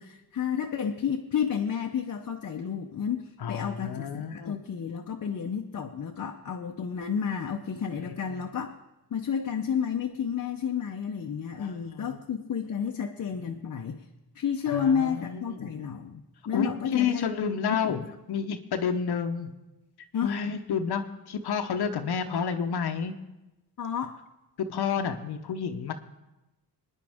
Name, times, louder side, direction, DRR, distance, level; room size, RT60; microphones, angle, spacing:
voice 1, 0.0-8.7 9.1-14.0 14.3-17.3 17.8-18.1 20.1-20.3 23.8-24.2, left 7 dB, 50° left, 2 dB, 0.8 m, -31 dB
voice 2, 3.4-4.5 8.0-8.4 11.6-12.2 14.7-15.7 16.5-18.0 18.3-19.5 20.2-23.1 24.6-25.9, left 6 dB, 75° left, 6 dB, 1.0 m, -30 dB
24.0 x 10.0 x 3.5 m, 1.0 s
wide cardioid pair, 120°, 39 cm